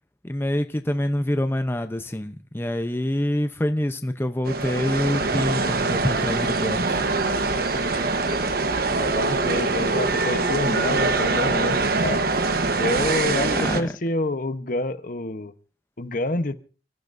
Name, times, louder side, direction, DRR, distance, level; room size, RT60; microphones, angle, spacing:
voice 1, 0.2-7.0 13.3-13.9, left 1 dB, 15° left, 0.7 m, -26 dB
sound 1, 4.5-13.8, right 3 dB, 60° right, 1.2 m, -23 dB
Bowed string instrument, 4.8-8.3, left 1 dB, 75° left, 4.9 m, -43 dB
voice 2, 9.0-12.3 12.8-15.5 16.0-16.5, left 2 dB, 50° left, 1.0 m, -28 dB
29.5 x 14.0 x 2.6 m
head